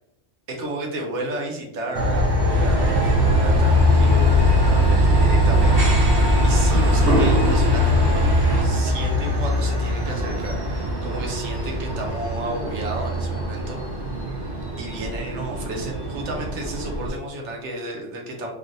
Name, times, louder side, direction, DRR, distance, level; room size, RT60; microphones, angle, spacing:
voice 1, 0.5-8.3 8.6-13.8 14.8-18.5, right 1 dB, 90° right, 1 dB, 1.0 m, -32 dB
Train, 1.9-17.1, equal, 35° right, 0.4 m, -21 dB
sound 1, 2.5-8.6, equal, 70° right, 1.4 m, -25 dB
3.2 x 2.4 x 2.6 m, 0.85 s
omnidirectional pair, 1.2 m